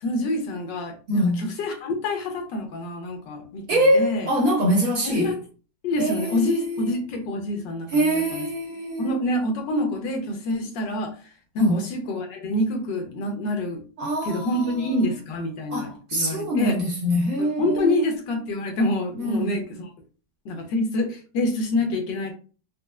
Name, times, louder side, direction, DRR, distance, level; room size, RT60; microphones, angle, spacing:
voice 1, 0.0-3.6 3.9-4.3 5.0-5.3 5.8-8.4 9.0-11.1 11.5-13.8 14.2-16.8 17.4-19.9 20.4-22.3, left 1 dB, 75° left, 1.4 m, -26 dB
voice 2, 1.1-1.4 3.7-5.3 6.0-7.0 7.9-9.2 11.6-11.8 14.0-15.0 15.7-18.0 19.2-19.6, equal, 55° right, 1.8 m, -24 dB
4.2 x 2.3 x 2.3 m
omnidirectional pair, 2.0 m